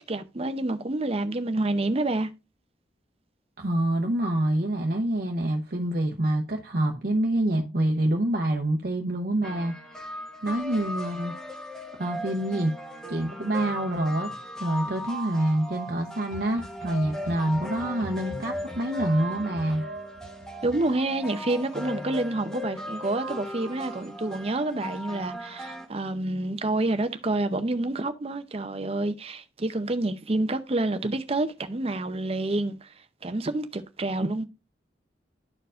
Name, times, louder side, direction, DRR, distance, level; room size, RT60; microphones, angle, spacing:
voice 1, 0.0-2.3 20.6-32.9 33.2-34.4, right 2 dB, 35° right, 0.7 m, -28 dB
voice 2, 3.6-9.7 10.4-11.3 12.0-12.7 13.1-14.3 14.6-19.8, right 1 dB, 60° right, 0.9 m, -26 dB
sound 1, 9.4-25.9, equal, 5° left, 1.0 m, -37 dB
sound 2, 16.2-21.5 23.2-23.6 23.9-24.0, right 1 dB, 90° left, 3.0 m, -45 dB
11.5 x 4.5 x 2.5 m
head